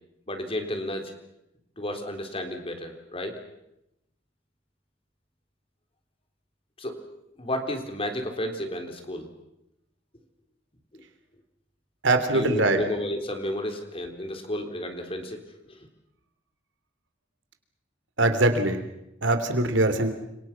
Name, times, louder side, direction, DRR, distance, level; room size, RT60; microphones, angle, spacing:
voice 1, 0.3-1.1 1.8-3.4 6.8-6.9 7.4-9.3 10.9-11.0 12.3-15.9, left 1 dB, 30° left, 5 dB, 3.8 m, -32 dB
voice 2, 12.0-12.8 18.2-18.8 19.2-20.1, right 2 dB, 70° right, 8 dB, 3.4 m, -22 dB
30.0 x 26.5 x 6.0 m, 0.85 s
head